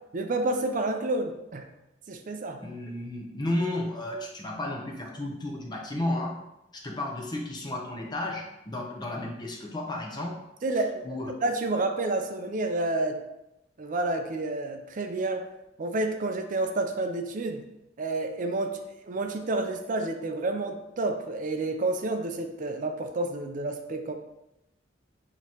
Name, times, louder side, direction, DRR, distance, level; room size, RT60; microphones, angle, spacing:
voice 1, 0.1-1.7 2.1-2.6 10.6-11.1 11.4-13.2 13.8-15.4 15.8-17.7 18.0-24.1, right 2 dB, 45° right, 5 dB, 0.5 m, -29 dB
voice 2, 2.6-6.3 6.7-10.4 11.0-11.3, left 1 dB, 25° left, 0 dB, 0.7 m, -33 dB
5.0 x 2.9 x 2.9 m, 0.89 s
head